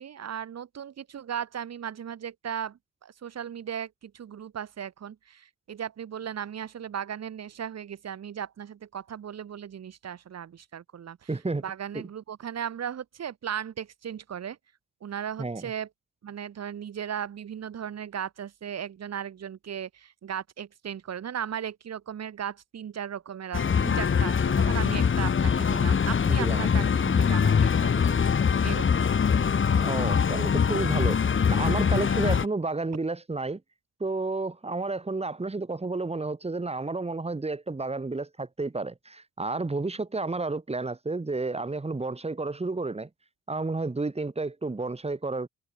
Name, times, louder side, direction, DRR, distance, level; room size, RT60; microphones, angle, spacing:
voice 1, 0.0-11.3 11.6-14.6 15.0-15.9 16.2-29.1, right 8 dB, 55° right, 6.8 m, -37 dB
voice 2, 11.3-11.6 11.9-12.0 15.4-15.7 26.3-26.9 29.8-33.6 34.0-43.1 43.5-45.5, right 3 dB, 20° right, 7.8 m, -31 dB
sound 1, 23.5-32.5, left 6 dB, 40° left, 3.1 m, -23 dB
cardioid pair, 90°, 30 cm